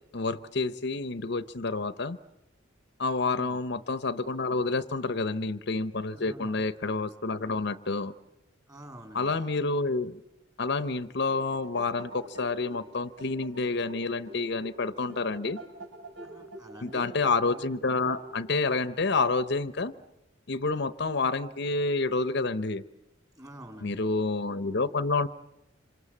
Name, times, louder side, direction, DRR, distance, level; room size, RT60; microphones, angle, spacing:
voice 1, 0.1-2.2 3.0-8.1 9.1-10.2 10.6-15.6 16.8-19.9 20.5-22.8 23.8-25.3, left 3 dB, 60° left, 13 dB, 0.9 m, -29 dB
voice 2, 3.2-3.6 6.1-6.7 8.7-9.4 16.2-17.7 23.4-24.0, equal, 20° right, 5 dB, 3.6 m, -47 dB
sound 1, 11.0-18.7, equal, 80° right, 5.7 m, -46 dB
27.5 x 26.5 x 7.3 m, 0.94 s
head